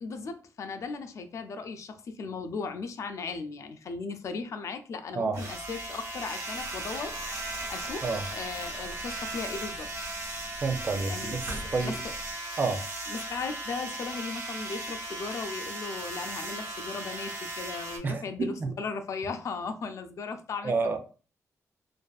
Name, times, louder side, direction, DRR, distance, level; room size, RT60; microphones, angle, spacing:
voice 1, 0.0-7.1 7.4-9.9 11.0-11.4 11.8-11.9 13.1-20.7, left 4 dB, 60° left, 8 dB, 0.4 m, -37 dB
sound 1, 5.3-18.0, right 2 dB, 60° right, 0.8 m, -37 dB
Boiling, 6.6-12.3, equal, 80° right, 1.0 m, -45 dB
voice 2, 10.6-12.0 12.6-12.8 18.0-18.7 20.6-21.0, right 4 dB, 35° right, 5 dB, 0.4 m, -29 dB
2.5 x 2.3 x 2.3 m, 0.37 s
cardioid pair, 100°, 6 cm